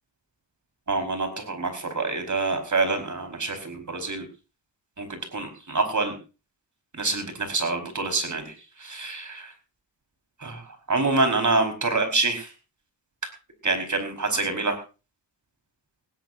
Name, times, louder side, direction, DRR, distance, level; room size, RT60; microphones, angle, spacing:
voice 1, 0.9-4.2 5.0-6.1 7.0-8.4 8.8-9.4 10.4-10.6 10.9-12.4 13.6-14.7, right 3 dB, 40° right, 6 dB, 4.6 m, -26 dB
18.0 x 17.5 x 2.6 m, 0.32 s
wide cardioid pair, 90°, 45 cm